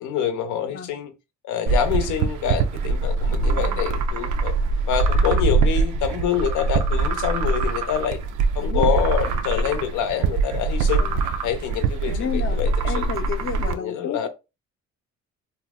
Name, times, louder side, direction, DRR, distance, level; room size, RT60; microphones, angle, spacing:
voice 1, 0.0-1.1 1.5-4.5 4.9-8.2 8.6-11.0 11.4-13.1 13.6-14.3, left 8 dB, 80° left, 0.7 m, -26 dB
sound 1, 1.7-13.7, right 4 dB, 75° right, 0.5 m, -23 dB
voice 2, 3.4-3.9 8.6-9.0 11.0-11.3 12.1-14.3, left 7 dB, 45° left, 0.6 m, -32 dB
2.7 x 2.1 x 3.5 m
cardioid pair, 90°, 30 cm